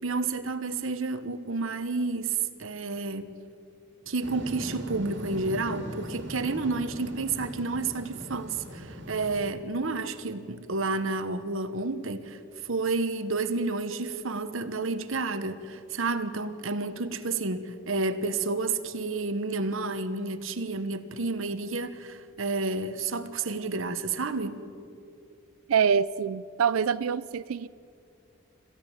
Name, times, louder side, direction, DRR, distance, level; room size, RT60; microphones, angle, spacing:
voice 1, 0.0-3.3 4.1-12.4 12.7-24.6, right 3 dB, 75° right, 1.2 m, -30 dB
sound 1, 4.2-9.5, equal, 55° right, 2.4 m, -40 dB
voice 2, 25.7-27.7, right 7 dB, 90° right, 0.4 m, -25 dB
27.0 x 15.5 x 7.2 m
head